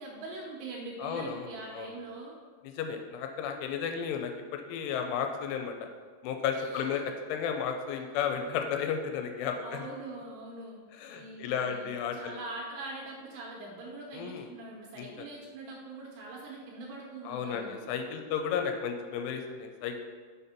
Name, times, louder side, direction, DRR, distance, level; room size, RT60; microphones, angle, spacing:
voice 1, 0.0-2.4 6.5-7.0 9.6-10.8 11.1-17.8, right 2 dB, 75° right, -2 dB, 2.7 m, -43 dB
voice 2, 1.0-1.9 2.6-5.7 6.2-7.0 7.3-9.9 11.0-12.4 14.1-14.5 15.0-15.3 17.3-20.0, left 7 dB, 85° left, 5 dB, 3.1 m, -33 dB
6.9 x 5.2 x 4.3 m, 1.5 s
omnidirectional pair, 5.5 m